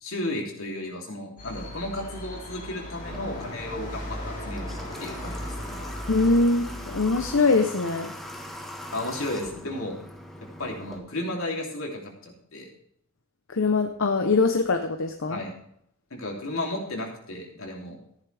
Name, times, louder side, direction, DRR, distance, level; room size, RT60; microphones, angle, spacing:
voice 1, 0.0-4.7 5.0-5.4 5.7-5.9 8.9-10.0 10.4-12.7 15.3-15.5 16.1-18.0, left 1 dB, 85° left, 0 dB, 3.1 m, -33 dB
sound 1, 1.4-7.4, left 1 dB, 40° left, 3.9 m, -37 dB
Water / Water tap faucet, 3.0-11.0, equal, ahead, 1.4 m, -41 dB
voice 2, 6.1-8.1 13.5-15.4, left 3 dB, 65° left, 6 dB, 0.8 m, -23 dB
14.0 x 10.5 x 3.4 m, 0.70 s
head